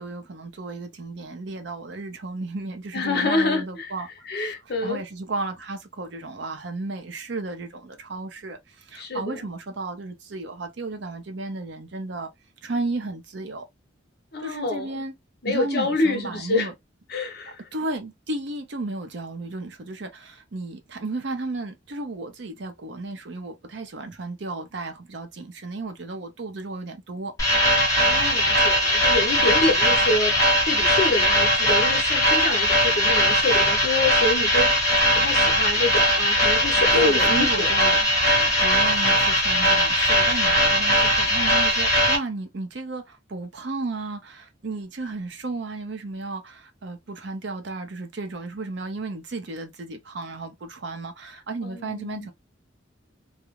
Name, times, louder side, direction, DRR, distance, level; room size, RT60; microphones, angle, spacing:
voice 1, 0.0-4.5 4.8-12.3 12.6-13.7 14.4-15.1 15.5-16.7 17.7-27.3 36.9-38.0 38.6-52.3, right 2 dB, 65° right, 0.6 m, -33 dB
voice 2, 2.9-3.9 4.3-5.0 9.0-9.5 14.3-15.0 15.4-16.7 17.1-17.6 27.8-30.3 30.7-34.7 35.1-38.7 51.6-52.3, left 3 dB, 55° left, 0.8 m, -27 dB
sound 1, 27.4-42.2, equal, 20° left, 1.0 m, -20 dB
2.3 x 2.0 x 2.9 m
head